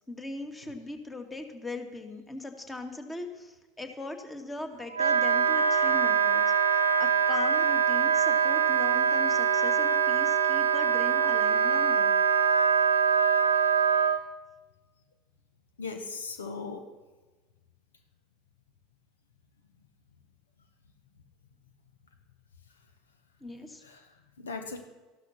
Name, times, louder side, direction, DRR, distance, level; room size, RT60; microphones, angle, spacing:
voice 1, 0.1-6.4 7.0-12.1 23.4-23.8, left 2 dB, 15° left, 6 dB, 2.2 m, -40 dB
Wind instrument woodwind instrument, 4.9-14.2, right 7 dB, 90° right, 1.0 m, -23 dB
voice 2, 15.8-16.8 23.8-24.8, left 4 dB, 80° left, 7 dB, 1.3 m, -38 dB
14.5 x 12.0 x 5.9 m, 1.2 s
figure-of-eight pair, 75°, 0 cm